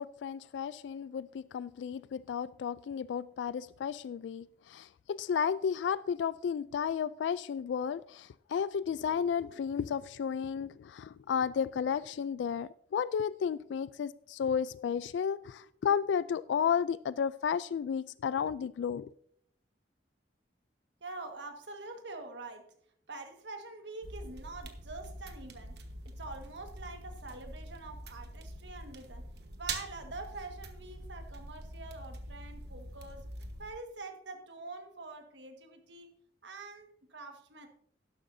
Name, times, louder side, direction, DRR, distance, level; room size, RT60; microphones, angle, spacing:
voice 1, 0.0-19.1, left 7 dB, 85° left, 17 dB, 0.3 m, -33 dB
voice 2, 21.0-22.7 23.1-25.8 26.0-29.3 29.6-33.3 33.6-36.1 36.4-37.7, right 3 dB, 85° right, 5 dB, 1.6 m, -45 dB
sound 1, 24.0-33.7, right 2 dB, 65° right, 1.2 m, -44 dB
12.0 x 11.5 x 2.7 m, 0.66 s
head